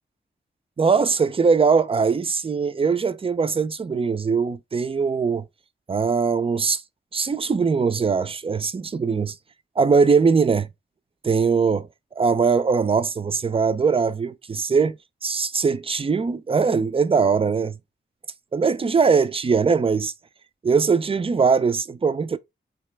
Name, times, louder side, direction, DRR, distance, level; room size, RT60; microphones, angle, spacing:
voice 1, 0.8-5.5 5.9-6.8 7.1-9.4 9.8-10.7 11.2-11.9 12.2-17.8 18.5-20.1 20.6-22.4, right 5 dB, 30° right, 0.3 m, -21 dB
3.9 x 2.3 x 3.2 m
cardioid pair, 50°, 20 cm